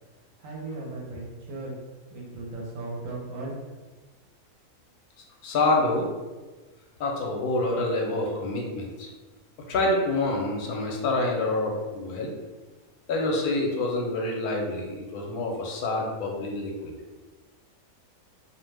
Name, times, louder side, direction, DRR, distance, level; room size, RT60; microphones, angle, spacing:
voice 1, 0.4-1.7 2.1-3.5, right 2 dB, 65° right, -2 dB, 1.0 m, -36 dB
voice 2, 5.4-6.1 7.0-9.1 9.7-12.3 13.1-16.9, left 2 dB, 80° left, 0 dB, 1.1 m, -27 dB
2.5 x 2.1 x 3.2 m, 1.2 s
omnidirectional pair, 1.6 m